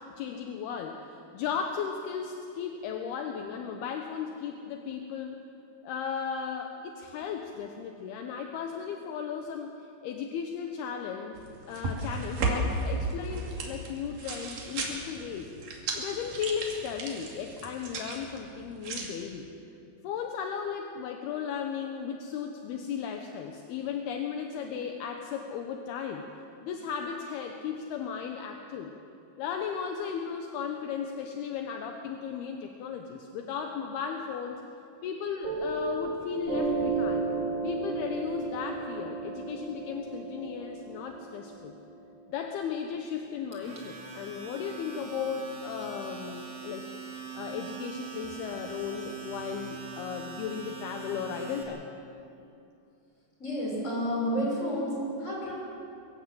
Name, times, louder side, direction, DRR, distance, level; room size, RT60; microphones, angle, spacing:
voice 1, 0.0-5.4 5.8-9.7 10.0-11.4 11.7-15.5 15.9-19.5 20.0-26.2 26.6-28.9 29.4-34.6 35.0-37.3 37.6-41.8 42.3-46.9 47.3-51.9, left 7 dB, 75° left, 4 dB, 2.8 m, -35 dB
sound 1, 11.4-19.1, right 2 dB, 55° right, 3.9 m, -35 dB
Piano, 35.4-42.5, right 3 dB, 75° right, 5.3 m, -33 dB
Domestic sounds home sounds, 43.5-51.6, right 6 dB, 30° right, 2.6 m, -42 dB
voice 2, 53.4-55.5, equal, 15° left, -4 dB, 6.4 m, -30 dB
23.5 x 15.5 x 7.8 m, 2.7 s
omnidirectional pair, 4.8 m